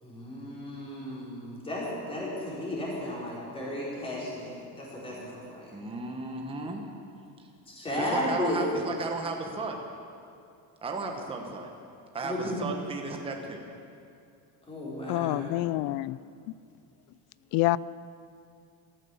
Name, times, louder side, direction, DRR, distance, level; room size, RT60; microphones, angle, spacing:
voice 1, 0.0-5.7 7.7-8.8 12.2-12.7 14.7-15.7, left 1 dB, 15° left, -6 dB, 4.5 m, -34 dB
voice 2, 5.7-6.8 8.0-9.8 10.8-11.7 12.1-13.6, right 3 dB, 15° right, 2 dB, 1.1 m, -34 dB
voice 3, 15.1-16.2 17.5-17.8, left 18 dB, 65° left, 20 dB, 0.5 m, -26 dB
14.5 x 13.5 x 7.0 m, 2.5 s
cardioid pair, 165°, 39 cm